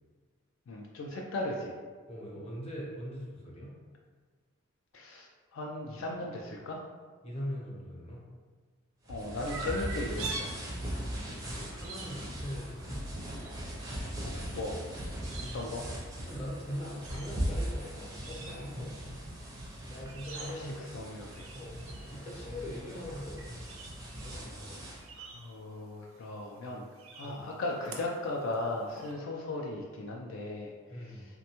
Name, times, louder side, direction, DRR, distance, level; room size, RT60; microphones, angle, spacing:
voice 1, 0.7-1.8 4.9-6.8 9.1-10.5 14.2-14.8 15.5-15.8 20.3-20.7 20.9-21.3 25.2-26.8 27.1-30.7 31.1-31.2, left 2 dB, 65° left, -1 dB, 0.3 m, -37 dB
voice 2, 2.1-3.7 7.2-8.2 11.2-13.0 15.3-15.8 16.3-19.0 19.9-20.9 21.5-21.8 22.1-23.4 24.2-24.8 27.2-27.4 30.9-31.3, equal, 30° left, -4 dB, 0.6 m, -41 dB
sound 1, 9.1-25.0, equal, 15° right, 0.4 m, -39 dB
Chirp tweet, 9.5-29.1, right 4 dB, 70° right, 0.5 m, -48 dB
3.3 x 2.2 x 2.8 m, 1.5 s
head